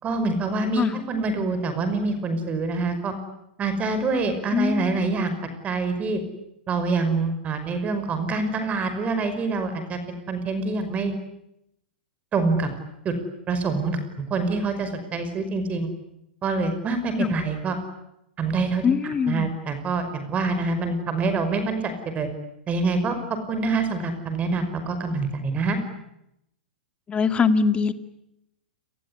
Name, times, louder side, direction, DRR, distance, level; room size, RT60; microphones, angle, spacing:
voice 1, 0.0-3.1 3.6-5.4 5.6-6.2 6.7-11.1 12.3-12.7 13.0-13.1 13.5-15.9 16.4-17.8 18.4-18.9 19.3-22.3 22.7-25.8, right 3 dB, 25° right, 9 dB, 5.5 m, -26 dB
voice 2, 4.5-5.0 17.2-17.3 18.8-19.5 27.1-27.9, left 5 dB, 20° left, 10 dB, 2.1 m, -22 dB
29.5 x 20.0 x 10.0 m, 0.83 s
hypercardioid pair, 120°, 6 cm